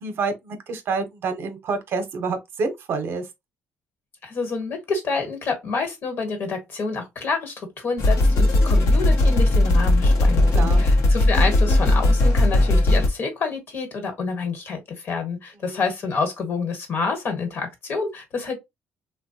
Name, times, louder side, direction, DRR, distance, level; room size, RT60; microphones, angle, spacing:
voice 1, 0.0-3.2 10.5-10.8 15.6-15.8, right 4 dB, 55° right, 0.6 m, -28 dB
voice 2, 4.2-18.6, left 4 dB, 55° left, 1.1 m, -28 dB
sound 1, 8.0-13.1, left 1 dB, 80° left, 0.8 m, -17 dB
3.0 x 2.1 x 2.7 m
cardioid pair, 110°, 5 cm